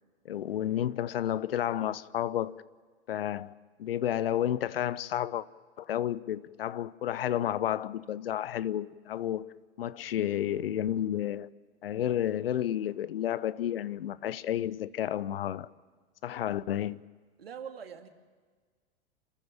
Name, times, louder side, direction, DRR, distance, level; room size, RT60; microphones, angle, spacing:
voice 1, 0.2-2.6 3.1-3.5 3.8-5.5 5.8-9.5 9.8-11.5 11.8-15.7 16.2-17.0, left 11 dB, 70° left, 0.8 m, -31 dB
voice 2, 17.4-18.1, right 7 dB, 70° right, 2.4 m, -42 dB
27.5 x 15.0 x 8.8 m
figure-of-eight pair, 95°, 31 cm